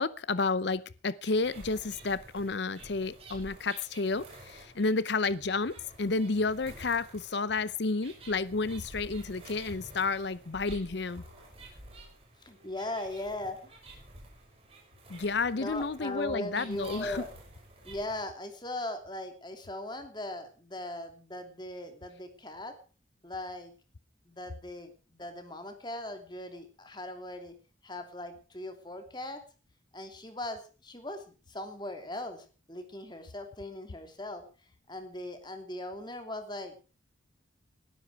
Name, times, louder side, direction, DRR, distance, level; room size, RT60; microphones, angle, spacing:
voice 1, 0.0-11.2 15.1-17.2, left 3 dB, 60° left, 0.7 m, -31 dB
sound 1, 1.2-18.2, right 2 dB, 30° right, 5.9 m, -51 dB
voice 2, 12.4-13.7 15.6-17.3 17.8-22.7 23.2-23.7 24.3-27.5 27.8-29.4 29.9-34.4 34.9-36.7, left 1 dB, 20° left, 2.8 m, -39 dB
19.5 x 12.5 x 4.7 m
head